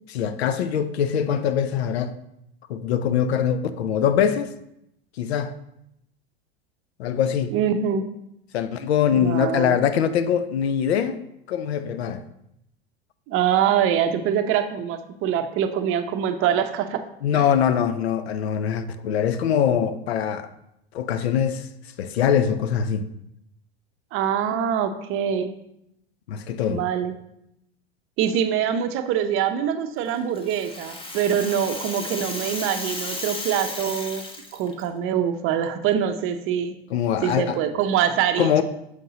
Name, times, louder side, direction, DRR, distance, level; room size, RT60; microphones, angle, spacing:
voice 1, 0.1-2.1 2.7-4.5 5.2-5.5 7.0-7.5 8.5-11.2 11.5-12.2 17.2-20.5 20.9-21.7 22.0-23.1 26.3-26.8 36.9-37.6 38.4-38.6, left 8 dB, 85° left, 0.5 m, -23 dB
voice 2, 7.5-8.0 9.1-9.8 13.3-17.0 17.3-17.4 24.1-25.5 26.7-27.1 28.2-34.2 34.5-36.8 37.2-38.6, right 9 dB, 45° right, 0.6 m, -24 dB
Rattle (instrument), 30.1-34.8, left 2 dB, 15° left, 0.9 m, -34 dB
6.5 x 5.3 x 2.8 m
hypercardioid pair, 100°, 31 cm